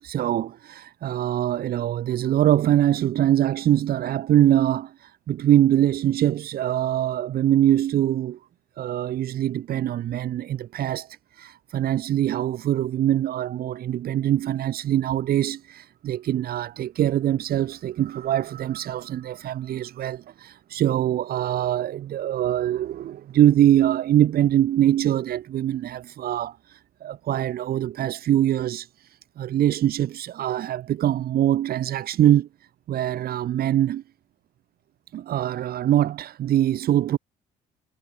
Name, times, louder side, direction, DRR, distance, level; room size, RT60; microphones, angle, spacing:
voice 1, 0.0-8.4 8.8-32.5 32.9-34.0 35.1-37.2, right 12 dB, 65° right, 6.3 m, -23 dB
cardioid pair, 110°, 17 cm